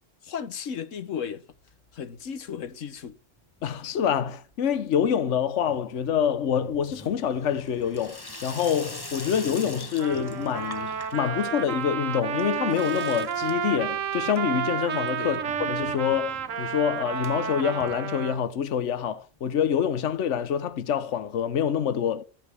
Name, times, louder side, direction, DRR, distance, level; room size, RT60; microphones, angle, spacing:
voice 1, 0.2-1.4 1.9-3.2 15.2-15.4, left 7 dB, 90° left, 1.4 m, -35 dB
Water tap faucet / Sink (filling or washing), 1.5-2.3 2.6-3.1 3.4-18.7 19.0-19.1 19.3-19.4 19.6-19.7 20.8-20.9, left 2 dB, 20° left, 1.2 m, -45 dB
voice 2, 3.6-22.2, left 8 dB, 70° left, 1.2 m, -26 dB
Trumpet, 10.0-18.4, right 8 dB, 85° right, 1.4 m, -31 dB
14.5 x 5.2 x 6.3 m
omnidirectional pair, 1.3 m